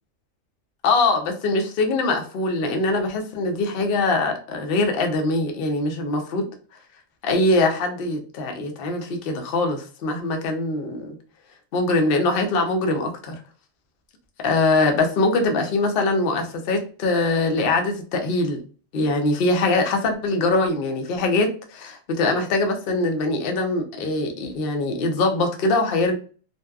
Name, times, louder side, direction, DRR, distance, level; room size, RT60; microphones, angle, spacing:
voice 1, 0.8-6.5 7.2-11.2 11.7-13.4 14.4-18.6 18.9-26.1, left 2 dB, 60° left, 4 dB, 0.7 m, -22 dB
2.7 x 2.2 x 2.2 m, 0.39 s
omnidirectional pair, 1.3 m